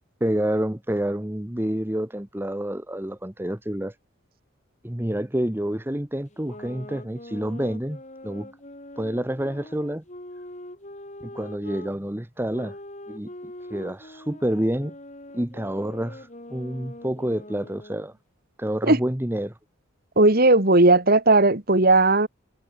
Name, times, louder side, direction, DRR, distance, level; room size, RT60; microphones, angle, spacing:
voice 1, 0.2-3.9 4.8-8.5 9.0-10.0 11.2-12.8 13.1-13.3 13.7-14.9 15.3-18.2 18.6-19.6, right 1 dB, 10° right, 1.0 m, -28 dB
sound 1, 6.3-11.9 12.5-18.1, left 1 dB, 35° left, 5.5 m, -43 dB
voice 2, 20.2-22.3, right 2 dB, 50° right, 2.3 m, -17 dB
head